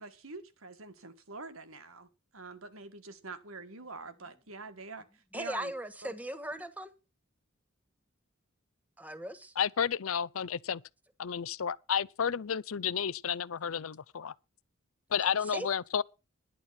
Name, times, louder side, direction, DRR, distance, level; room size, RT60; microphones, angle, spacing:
voice 1, 0.0-2.1 2.3-5.0 5.3-5.7 6.0-6.1, right 3 dB, 85° right, 1.7 m, -45 dB
voice 2, 5.3-6.9 9.0-9.5 15.2-15.7, right 1 dB, 10° right, 1.4 m, -39 dB
voice 3, 9.6-10.8 11.2-14.3 15.1-16.0, left 7 dB, 85° left, 0.6 m, -31 dB
11.0 x 9.9 x 5.9 m
head